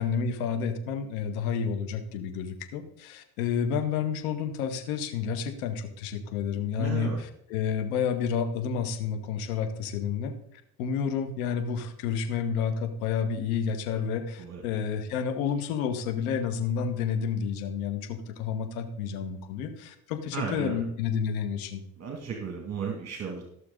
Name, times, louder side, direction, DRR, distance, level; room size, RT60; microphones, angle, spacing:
voice 1, 0.0-7.1 7.5-10.3 10.8-21.8, left 7 dB, 90° left, 8 dB, 1.7 m, -30 dB
voice 2, 6.7-7.2 14.4-14.6 20.3-20.8 22.0-23.4, right 6 dB, 35° right, 1 dB, 2.4 m, -34 dB
16.5 x 6.7 x 4.0 m, 0.72 s
supercardioid pair, 85°, 42 cm